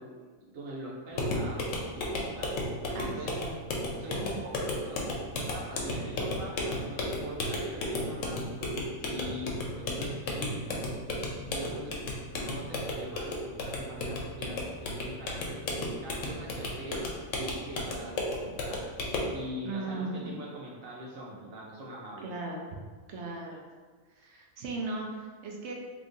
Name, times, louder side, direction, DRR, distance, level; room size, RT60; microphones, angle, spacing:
voice 1, 0.0-2.5 3.0-3.3 4.0-5.0 5.4-10.8 11.5-11.9 12.3-17.1 17.4-19.0 19.3-22.3, right 1 dB, 90° right, -4 dB, 1.2 m, -42 dB
sound 1, 1.1-19.4, left 1 dB, 75° left, 1.0 m, -34 dB
voice 2, 2.9-3.6 19.6-20.4 22.2-22.6 23.1-23.6 24.2-25.7, right 2 dB, 65° right, 0 dB, 0.8 m, -37 dB
3.0 x 2.6 x 3.6 m, 1.4 s
omnidirectional pair, 1.4 m